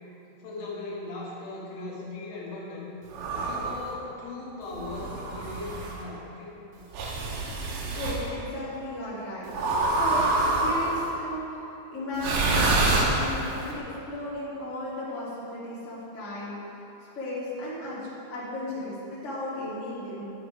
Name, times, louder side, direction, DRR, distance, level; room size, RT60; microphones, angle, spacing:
voice 1, 0.4-2.9 3.3-6.6, left 2 dB, 70° left, -5 dB, 3.7 m, -38 dB
sound 1, 3.1-3.8 4.8-6.0 6.9-8.2 9.5-11.1 12.1-13.6, right 2 dB, 70° right, 2.0 m, -26 dB
voice 2, 7.9-11.6 11.9-16.8 17.1-20.2, left 1 dB, 25° left, -8 dB, 1.6 m, -35 dB
11.0 x 9.0 x 4.9 m, 3.0 s
omnidirectional pair, 5.4 m